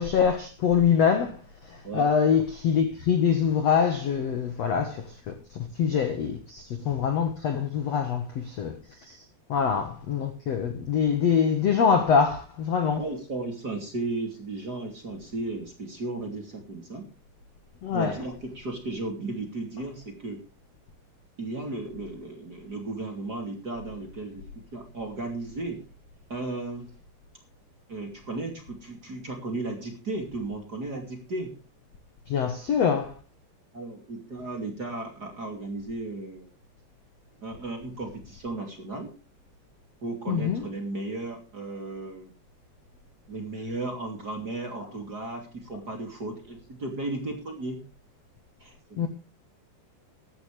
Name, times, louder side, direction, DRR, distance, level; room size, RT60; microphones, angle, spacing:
voice 1, 0.0-1.4 1.6-8.8 9.0-9.2 9.5-13.0 17.8-18.2 32.3-33.1 40.3-40.6 49.0-49.1, left 7 dB, 65° left, 1.6 m, -24 dB
voice 2, 12.9-17.1 17.9-20.4 21.4-25.8 26.3-26.9 27.9-31.5 33.7-36.5 37.4-39.1 40.0-42.3 43.3-47.8 48.6-49.1, right 2 dB, 25° right, 2.6 m, -35 dB
15.5 x 13.0 x 3.4 m
omnidirectional pair, 5.1 m